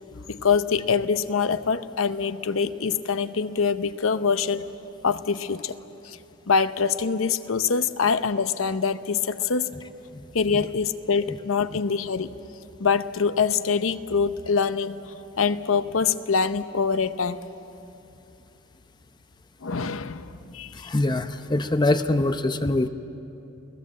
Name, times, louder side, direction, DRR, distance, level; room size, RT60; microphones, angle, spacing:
voice 1, 0.3-4.6 5.0-5.8 6.0-6.2 6.5-9.7 10.3-12.3 12.8-15.0 15.4-17.4 19.6-20.7, left 5 dB, 90° left, 12 dB, 0.8 m, -24 dB
voice 2, 20.7-22.9, left 2 dB, 20° left, 9 dB, 0.7 m, -24 dB
29.0 x 18.0 x 7.6 m, 2.9 s
head